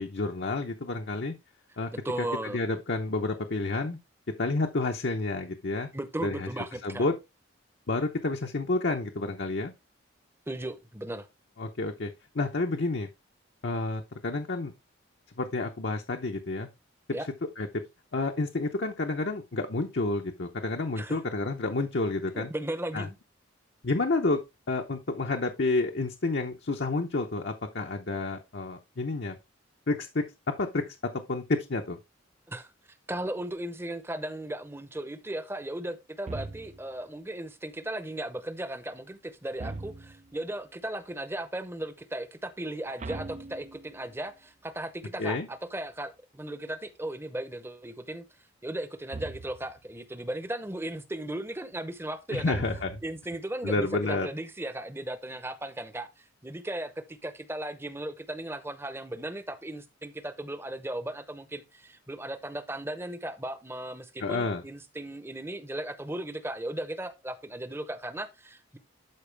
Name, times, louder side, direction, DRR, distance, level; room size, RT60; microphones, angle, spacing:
voice 1, 0.0-1.3 1.8-1.9 2.2-4.0 4.4-5.9 6.2-6.5 6.8-7.1 7.9-9.7 11.6-13.1 13.6-14.7 15.4-16.7 17.6-17.8 18.1-22.5 22.9-23.1 23.8-24.4 24.7-29.4 29.9-31.0 31.3-32.0 45.2-45.5 52.3-52.9 53.6-54.3 64.2-64.6, left 3 dB, 55° left, 0.8 m, -30 dB
voice 2, 2.0-2.6 5.9-7.1 10.5-11.3 17.1-17.3 21.0-21.2 22.3-23.2 32.5-32.7 33.1-48.2 48.6-52.6 53.0-68.8, right 1 dB, 10° right, 0.8 m, -36 dB
sound 1, 36.3-37.0 39.6-40.4 43.0-44.2 49.1-49.8 52.5-53.3, right 3 dB, 35° right, 0.4 m, -40 dB
12.0 x 4.7 x 3.4 m
head